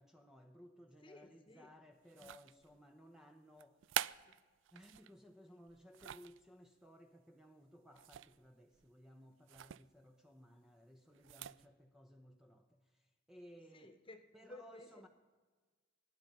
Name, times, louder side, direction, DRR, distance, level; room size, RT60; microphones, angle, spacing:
voice 1, 0.0-3.8 4.7-13.9 14.3-15.1, equal, ahead, 0.8 m, -60 dB
voice 2, 1.0-1.7 2.1-2.3 4.2-4.3 13.7-15.1, left 1 dB, 25° left, 1.3 m, -56 dB
sound 1, 2.1-2.8 3.6-5.1 5.7-6.4 7.9-8.5 8.7-8.9 9.5-9.8 11.1-11.7, right 11 dB, 70° right, 0.4 m, -44 dB
23.5 x 10.5 x 5.4 m
head